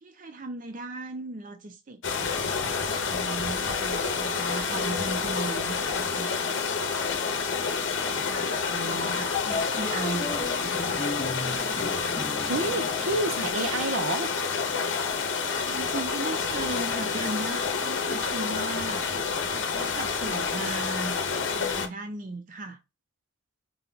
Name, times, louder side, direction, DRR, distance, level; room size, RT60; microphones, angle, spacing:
voice 1, 0.0-2.4 3.0-6.6 8.0-11.1 15.6-19.0 19.5-21.2 21.4-22.8, right 2 dB, 40° right, 0.4 m, -37 dB
sound 1, 2.0-21.9, left 5 dB, 65° left, 0.7 m, -29 dB
sound 2, 7.1-13.8, left 3 dB, 30° left, 0.4 m, -37 dB
voice 2, 8.7-9.2 12.5-14.3, right 2 dB, 85° right, 0.8 m, -30 dB
4.5 x 2.2 x 3.8 m
head